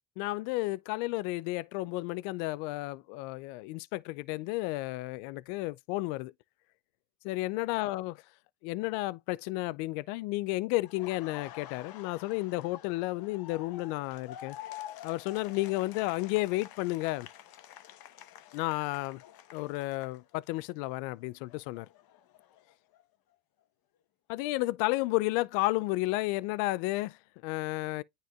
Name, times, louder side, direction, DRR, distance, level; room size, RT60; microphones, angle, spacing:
voice 1, 0.2-6.3 7.2-8.1 8.6-14.6 15.0-17.3 18.5-19.2 19.5-21.9 24.3-28.0, left 20 dB, 80° left, 0.6 m, -32 dB
Laughter, 10.8-20.7 21.0-23.0, left 11 dB, 45° left, 1.1 m, -49 dB
9.4 x 4.6 x 2.3 m
supercardioid pair, 100°, 49 cm